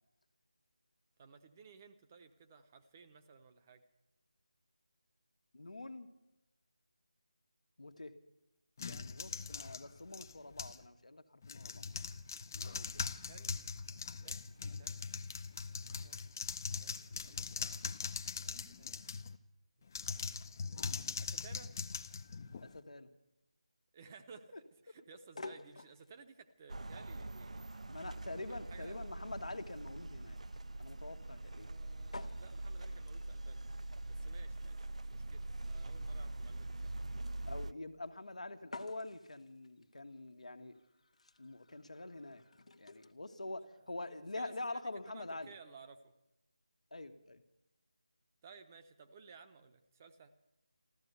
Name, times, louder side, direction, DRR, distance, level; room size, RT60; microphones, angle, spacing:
voice 1, 1.2-3.8 13.3-13.7 14.2-14.4 14.8-15.1 15.6-16.3 16.8-17.8 18.4-19.4 19.9-20.5 21.2-21.7 23.9-27.7 28.5-28.9 31.6-33.7 34.1-37.0 44.3-46.1 48.4-50.3, right 5 dB, 25° right, 7 dB, 0.8 m, -58 dB
voice 2, 5.5-6.1 7.8-8.2 8.8-11.8 12.5-13.0 22.6-23.1 24.5-24.6 27.9-30.4 30.8-31.7 37.4-40.7 41.4-42.4 42.8-45.5 46.9-47.4, left 2 dB, 85° left, 8 dB, 1.4 m, -46 dB
sound 1, 8.8-10.9 11.4-19.4 19.9-22.8, left 5 dB, 30° left, 0.6 m, -41 dB
sound 2, 25.2-43.1, left 3 dB, 65° left, 1.1 m, -55 dB
sound 3, 26.7-37.7, right 2 dB, 75° right, 0.6 m, -43 dB
14.5 x 12.5 x 8.1 m, 0.93 s
figure-of-eight pair, 165°, 4 cm